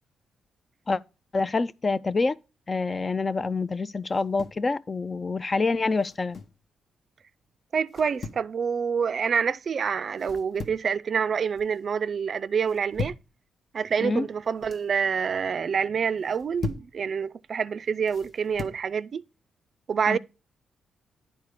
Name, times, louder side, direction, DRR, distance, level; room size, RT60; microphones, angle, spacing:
voice 1, 1.3-2.4 2.7-6.4 14.0-14.2 20.1-20.2, left 3 dB, 30° left, 0.3 m, -26 dB
sound 1, 4.1-4.7 6.0-6.6 7.9-8.5 10.2-10.9 11.3-11.8 12.6-13.3 14.4-14.9 16.2-16.9 18.1-18.8, left 5 dB, 50° left, 0.8 m, -38 dB
voice 2, 7.7-13.1 13.7-19.2 19.9-20.2, right 6 dB, 50° right, 0.3 m, -27 dB
9.4 x 4.1 x 4.8 m
cardioid pair, 80°, 0 cm